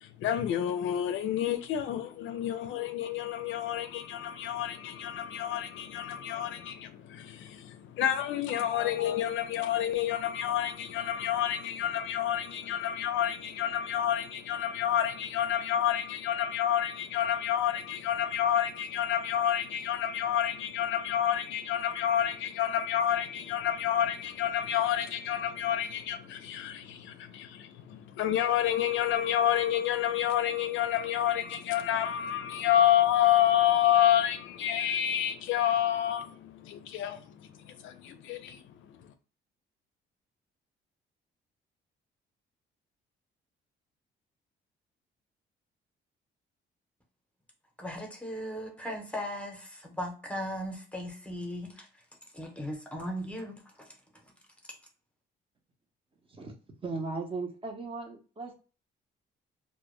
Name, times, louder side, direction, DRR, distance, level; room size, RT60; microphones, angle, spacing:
voice 1, 0.0-37.2 37.6-39.0, left 10 dB, 75° left, 0.4 m, -29 dB
voice 2, 47.8-51.9 52.3-53.9, equal, 5° left, 0.7 m, -38 dB
voice 3, 56.8-58.5, right 3 dB, 25° right, 0.7 m, -37 dB
2.1 x 2.1 x 3.0 m
cardioid pair, 90°, 20 cm